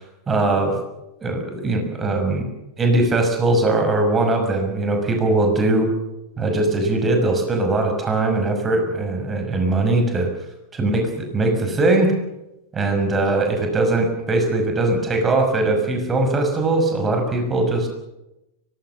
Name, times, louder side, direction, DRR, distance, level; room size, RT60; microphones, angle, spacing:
voice 1, 0.3-0.8 1.2-2.5 2.8-5.9 6.4-10.3 10.7-12.1 12.7-17.9, right 2 dB, 20° right, 4 dB, 6.1 m, -20 dB
24.0 x 20.0 x 7.0 m, 0.91 s
figure-of-eight pair, 90°, 0 cm